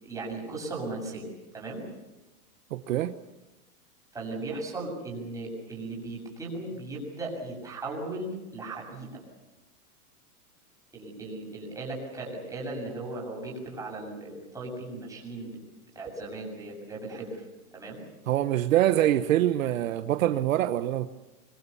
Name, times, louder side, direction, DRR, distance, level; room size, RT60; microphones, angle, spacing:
voice 1, 0.0-1.3 1.5-1.8 4.1-9.2 10.9-15.6 16.0-17.4 17.7-18.0, right 2 dB, 5° right, -2 dB, 7.1 m, -37 dB
voice 2, 2.7-3.1 18.3-21.1, right 12 dB, 60° right, 9 dB, 1.2 m, -24 dB
25.0 x 24.0 x 7.0 m, 1.0 s
supercardioid pair, 170°, 45 cm